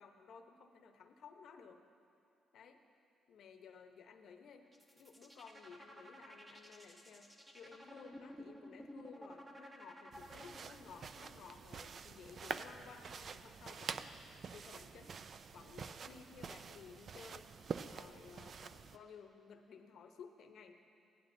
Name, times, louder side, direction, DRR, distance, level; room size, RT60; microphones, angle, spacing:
voice 1, 0.0-1.8 2.5-2.8 3.3-4.7 4.9-14.1 14.5-15.2 15.5-17.5 17.9-20.8, left 6 dB, 70° left, 6 dB, 0.8 m, -56 dB
sound 1, 4.7-10.9, equal, 10° right, 1.3 m, -54 dB
sound 2, 10.1-19.0, right 6 dB, 50° right, 0.4 m, -47 dB
17.0 x 10.5 x 2.6 m, 2.7 s
cardioid pair, 90°, 0 cm